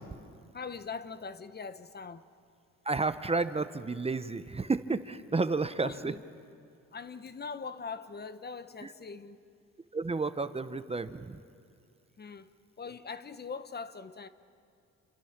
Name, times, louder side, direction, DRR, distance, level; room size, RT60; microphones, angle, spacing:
voice 1, 0.5-2.3 5.8-6.2 6.9-9.4 12.2-12.5 12.8-14.3, left 5 dB, 35° left, 12 dB, 1.0 m, -41 dB
voice 2, 2.8-6.1 8.8-8.9 9.9-11.4, right 3 dB, 20° right, 11 dB, 0.9 m, -31 dB
29.0 x 26.5 x 6.0 m, 2.5 s
cardioid pair, 90°, 30 cm